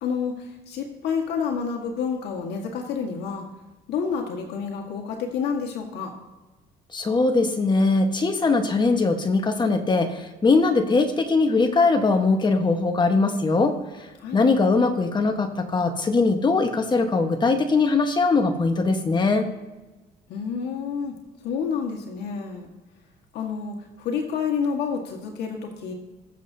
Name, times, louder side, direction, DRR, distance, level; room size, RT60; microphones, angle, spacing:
voice 1, 0.0-3.5 3.9-6.1 14.2-14.4 20.3-21.1 21.4-22.7 23.3-25.9, left 6 dB, 75° left, 1 dB, 1.8 m, -29 dB
voice 2, 6.9-13.8 14.3-19.5, left 3 dB, 25° left, 6 dB, 1.3 m, -21 dB
21.0 x 7.2 x 2.8 m, 1.2 s
cardioid pair, 110°, 17 cm